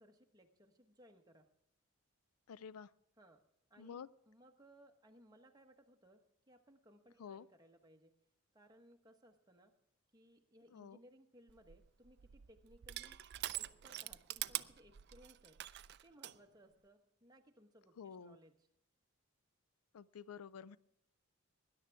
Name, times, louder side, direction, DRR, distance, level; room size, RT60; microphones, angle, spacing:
voice 1, 0.0-1.5 3.2-3.4 3.7-8.2 8.5-9.7 10.1-13.2 13.5-15.6 16.0-18.5, equal, 20° right, 4 dB, 1.1 m, -64 dB
voice 2, 2.5-2.9 3.8-4.1 7.2-7.5 10.7-11.0 18.0-18.4 19.9-20.8, left 7 dB, 85° left, 19 dB, 0.4 m, -50 dB
Crushing, 11.5-16.4, right 14 dB, 50° right, 0.4 m, -45 dB
19.5 x 11.0 x 3.5 m, 0.77 s
head